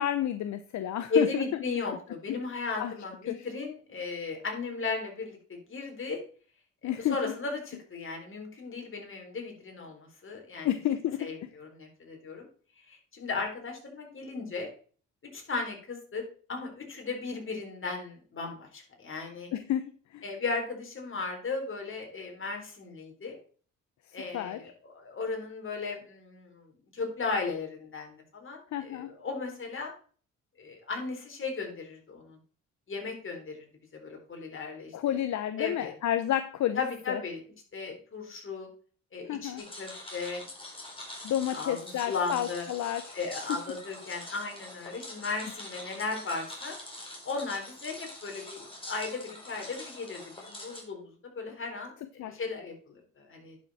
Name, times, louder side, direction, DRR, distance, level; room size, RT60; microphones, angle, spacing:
voice 1, 0.0-1.4 1.9-2.0 2.8-2.9 3.3-3.5 6.8-7.2 10.6-11.5 19.5-20.2 24.3-24.6 28.7-29.1 34.9-36.8 37.1-37.2 39.3-39.6 41.2-43.2 52.2-52.4, left 11 dB, 65° left, 11 dB, 0.8 m, -30 dB
voice 2, 1.1-6.2 6.8-10.7 11.2-12.5 12.9-14.7 15.3-16.2 16.5-19.5 20.2-23.4 24.1-29.9 30.6-32.4 32.9-33.7 33.9-35.2 35.6-35.9 36.7-37.4 37.7-38.7 39.1-40.5 41.5-42.6 43.1-46.8 47.2-53.6, left 4 dB, 45° left, 2 dB, 4.1 m, -36 dB
sound 1, 39.6-50.8, left 1 dB, 15° left, 4.3 m, -45 dB
10.5 x 6.6 x 4.2 m, 0.42 s
cardioid pair, 90°, 30 cm